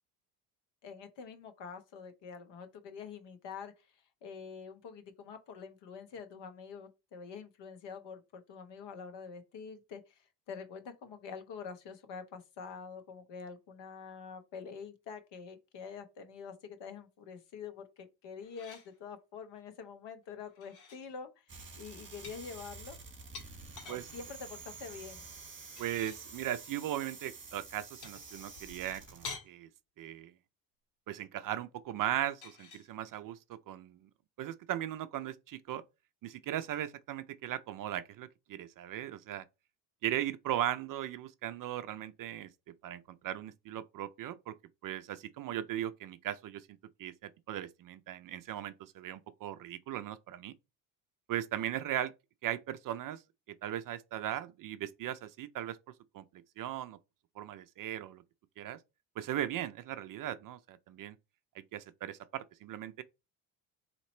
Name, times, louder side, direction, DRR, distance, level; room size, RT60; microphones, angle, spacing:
voice 1, 0.8-23.0 23.9-25.3, left 6 dB, 60° left, 1.2 m, -46 dB
sound 1, 18.4-18.9 20.4-21.1 22.2-24.1 25.6-26.3 28.0-29.5 32.2-32.9, left 4 dB, 80° left, 1.5 m, -48 dB
sound 2, 21.5-29.3, right 4 dB, 25° right, 1.5 m, -49 dB
voice 2, 25.8-29.7 30.0-30.3 31.1-34.1 34.4-35.8 36.2-39.4 40.0-42.5 42.8-44.5 44.8-46.7 47.0-50.5 51.3-52.1 52.4-53.2 53.6-55.8 56.1-56.2 56.6-57.0 57.4-58.2 58.6-58.8 59.2-61.2 61.6-63.0, right 12 dB, 45° right, 0.5 m, -38 dB
4.1 x 2.9 x 4.2 m
supercardioid pair, 75°, 49 cm